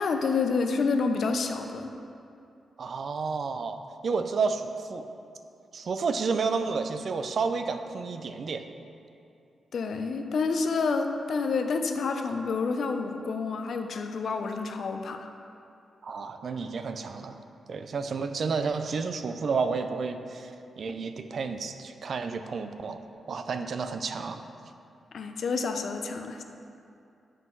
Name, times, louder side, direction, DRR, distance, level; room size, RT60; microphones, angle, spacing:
voice 1, 0.0-1.9 9.7-15.3 25.1-26.4, left 4 dB, 70° left, 6 dB, 0.5 m, -28 dB
voice 2, 2.8-5.1 5.7-8.7 16.0-17.4 17.7-24.5, right 4 dB, 65° right, 8 dB, 0.4 m, -31 dB
8.2 x 3.8 x 4.5 m, 2.6 s
cardioid pair, 70°, 0 cm